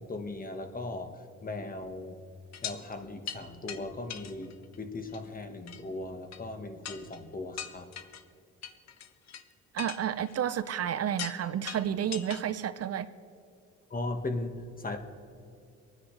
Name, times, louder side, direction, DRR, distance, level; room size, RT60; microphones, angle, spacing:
voice 1, 0.0-2.1 2.6-4.5 4.8-7.9 13.9-15.0, left 2 dB, 30° left, 6 dB, 1.5 m, -38 dB
sound 1, 2.5-2.8 3.3-3.4 3.7-3.8 4.1-4.8 5.1-5.2 5.7-5.8 6.3-6.4 6.8-7.2 7.6-8.2 8.6-9.4 9.8-10.8 11.2-11.4 11.7-12.4 12.8-12.9, left 8 dB, 60° left, 1.1 m, -40 dB
voice 2, 9.7-13.1, right 9 dB, 55° right, 14 dB, 0.6 m, -31 dB
25.0 x 9.9 x 3.3 m, 2.5 s
cardioid pair, 90°, 30 cm